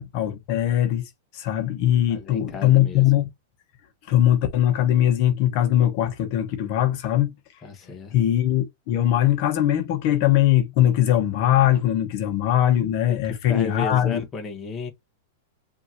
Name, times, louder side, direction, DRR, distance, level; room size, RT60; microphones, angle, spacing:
voice 1, 0.0-3.3 4.1-7.3 8.1-14.2, left 12 dB, 45° left, 1.1 m, -21 dB
voice 2, 2.1-3.0 7.6-8.1 13.1-13.2 13.5-14.9, left 4 dB, 20° left, 1.1 m, -33 dB
5.5 x 2.8 x 2.8 m
supercardioid pair, 150°, 0 cm